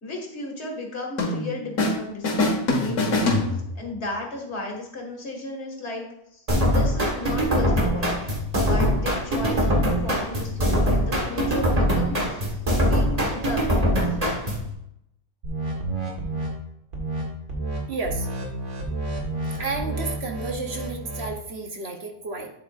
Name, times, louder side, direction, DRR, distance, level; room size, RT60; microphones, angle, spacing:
voice 1, 0.0-8.2 8.6-14.2, left 2 dB, 50° left, 0 dB, 2.3 m, -35 dB
sound 1, 1.2-2.0 2.2-4.0, left 2 dB, 90° left, 1.9 m, -24 dB
sound 2, 6.5-14.7, equal, 25° right, 1.6 m, -22 dB
sound 3, 15.4-16.5 16.9-17.2 17.5-17.8 18.0-21.3, right 2 dB, 80° right, 2.4 m, -30 dB
voice 2, 17.9-18.3 19.6-22.5, right 3 dB, 50° right, 4 dB, 1.2 m, -31 dB
8.7 x 7.8 x 2.6 m, 0.79 s
omnidirectional pair, 1.5 m